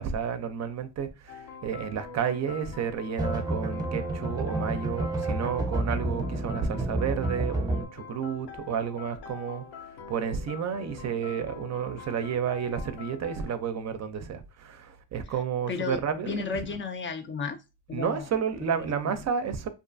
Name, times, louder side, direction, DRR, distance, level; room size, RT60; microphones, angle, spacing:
voice 1, 0.0-16.4 17.9-19.7, right 7 dB, 50° right, 0.5 m, -31 dB
sound 1, 1.3-13.5, left 5 dB, 80° left, 0.6 m, -45 dB
sound 2, 3.2-7.8, right 1 dB, 10° right, 0.7 m, -30 dB
voice 2, 15.7-16.0 16.3-17.6 17.9-18.3 18.7-18.9, left 5 dB, 35° left, 0.4 m, -32 dB
2.5 x 2.3 x 2.5 m
cardioid pair, 85°, 36 cm